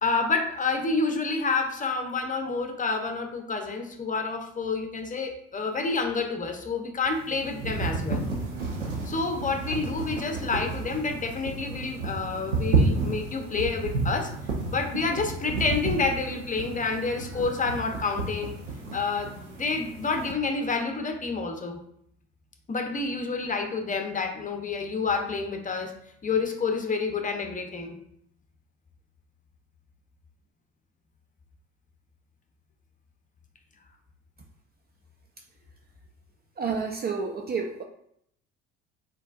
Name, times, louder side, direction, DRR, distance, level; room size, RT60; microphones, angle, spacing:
voice 1, 0.0-8.3 9.0-14.3 14.7-18.5 18.9-21.8 22.7-25.9 26.2-27.9, left 4 dB, 20° left, 4 dB, 0.8 m, -29 dB
sound 1, 7.1-20.3, right 3 dB, 80° right, 0.8 m, -31 dB
voice 2, 36.6-37.8, right 5 dB, 25° right, 4 dB, 0.5 m, -30 dB
4.2 x 4.1 x 2.5 m, 0.69 s
figure-of-eight pair, 55°, 36 cm